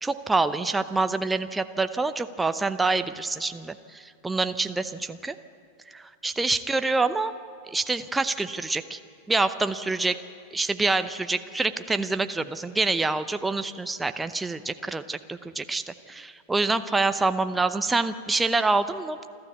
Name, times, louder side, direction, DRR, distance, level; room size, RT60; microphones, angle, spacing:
voice 1, 0.0-5.4 5.9-7.3 7.7-9.0 9.3-10.2 10.5-19.2, right 3 dB, 10° right, 10 dB, 0.7 m, -26 dB
28.5 x 12.5 x 8.3 m, 2.3 s
figure-of-eight pair, 90°, 0 cm